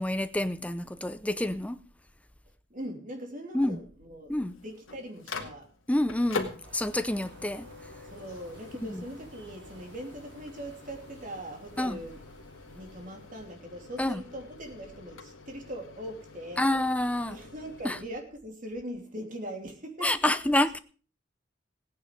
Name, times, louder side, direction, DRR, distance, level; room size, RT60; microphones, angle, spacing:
voice 1, 0.0-1.8 3.5-3.8 4.3-4.5 5.9-7.7 8.8-9.0 11.8-12.0 14.0-14.2 16.6-17.4 17.8-18.0 20.0-20.8, left 1 dB, 5° left, 0.6 m, -28 dB
voice 2, 2.7-4.3 4.6-5.7 8.1-12.2 12.6-16.7 17.3-20.5, equal, 40° right, 3.0 m, -41 dB
Microwave oven, 4.4-18.0, left 4 dB, 85° left, 2.1 m, -44 dB
sound 1, 6.6-13.5, right 1 dB, 60° right, 4.7 m, -54 dB
17.0 x 9.6 x 5.1 m
head